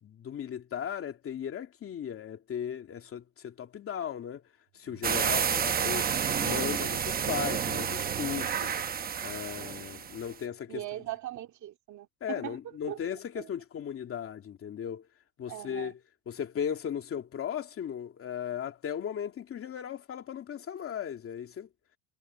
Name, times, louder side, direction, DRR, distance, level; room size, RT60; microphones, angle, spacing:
voice 1, 0.0-4.4 4.7-6.1 6.4-8.7 9.2-10.8 12.2-15.1 15.4-16.0 16.3-21.7, left 8 dB, 35° left, 2.7 m, -37 dB
Bowed string instrument, 4.8-10.1, right 20 dB, 75° right, 3.1 m, -49 dB
sound 1, 5.0-10.2, right 7 dB, 25° right, 0.9 m, -30 dB
voice 2, 10.7-12.6 12.9-13.0 13.4-13.5 15.5-15.9, right 14 dB, 50° right, 2.5 m, -40 dB
cardioid pair, 150°, 37 cm